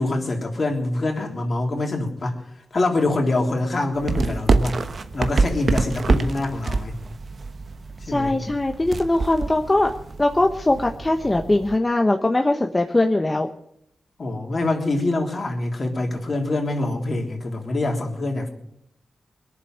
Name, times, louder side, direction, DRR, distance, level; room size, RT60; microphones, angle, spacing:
voice 1, 0.0-2.4 2.7-4.7 5.1-6.9 8.1-8.3 14.2-18.5, left 2 dB, 50° left, 1 dB, 3.4 m, -25 dB
sound 1, 3.9-11.8, right 3 dB, 55° right, 1.1 m, -26 dB
voice 2, 8.0-9.9 10.2-13.5, left 2 dB, 25° left, 4 dB, 1.1 m, -21 dB
21.0 x 7.2 x 7.7 m, 0.73 s
cardioid pair, 50°, 0 cm